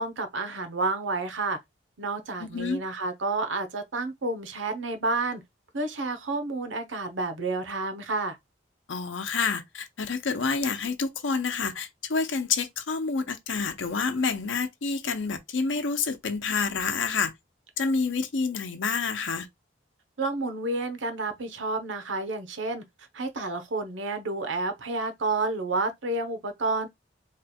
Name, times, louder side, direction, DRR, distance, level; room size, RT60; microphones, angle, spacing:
voice 1, 0.0-1.6 2.0-5.4 5.7-8.4 20.2-22.8 23.1-26.9, right 3 dB, 85° right, 0.8 m, -30 dB
voice 2, 2.4-2.8 8.9-17.3 17.8-19.5, left 4 dB, 85° left, 0.7 m, -28 dB
3.2 x 2.3 x 4.2 m
head